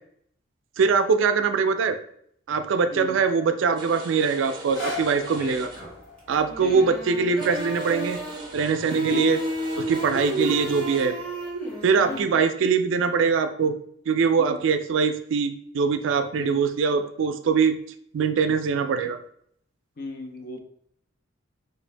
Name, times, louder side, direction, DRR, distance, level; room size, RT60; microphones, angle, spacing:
voice 1, 0.8-2.0 2.5-5.7 6.3-8.2 8.5-9.4 9.8-11.2 11.8-13.7 14.1-17.8 18.1-19.2, right 5 dB, 70° right, 8 dB, 0.3 m, -22 dB
sound 1, 3.8-6.1 6.4-6.5 7.0-7.1 7.4-11.1, right 1 dB, 20° right, 0.5 m, -41 dB
sound 2, 4.5-10.6 11.2-11.3, left 3 dB, 70° left, 1.0 m, -42 dB
sound 3, 5.8-6.2 6.5-8.5 8.9-12.2, equal, 5° left, 0.9 m, -32 dB
voice 2, 6.6-6.9 9.1-9.4 10.3-10.6 12.1-12.4 14.3-14.6 16.4-16.6 20.0-20.6, left 2 dB, 45° left, 4 dB, 0.5 m, -36 dB
3.2 x 2.6 x 3.2 m, 0.68 s
head